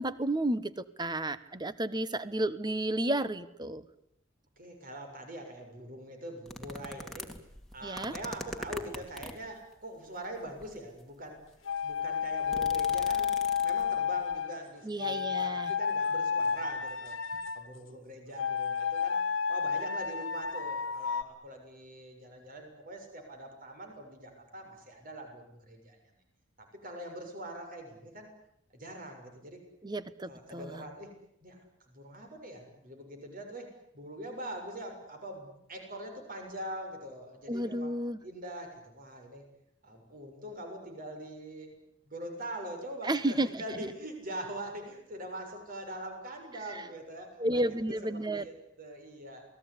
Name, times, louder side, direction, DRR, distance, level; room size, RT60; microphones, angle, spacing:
voice 1, 0.0-3.9 7.8-8.1 14.8-15.7 29.8-30.9 37.5-38.2 43.0-43.6 46.7-46.8 47.4-48.5, right 1 dB, 20° right, 14 dB, 1.3 m, -32 dB
voice 2, 4.6-7.3 7.7-11.4 11.8-17.2 17.5-19.2 19.5-26.0 26.6-28.3 28.7-29.6 30.3-31.1 31.4-37.9 38.2-39.4 39.8-41.7 42.1-49.5, right 1 dB, 45° right, 4 dB, 7.0 m, -43 dB
sound 1, 6.5-9.5 10.3-10.8 11.4-11.5 11.8-14.0 14.3-14.4, left 1 dB, ahead, 2.7 m, -43 dB
sound 2, 11.6-14.6 15.0-17.7 18.3-21.2, left 6 dB, 80° left, 1.7 m, -31 dB
29.0 x 19.5 x 9.9 m, 0.75 s
head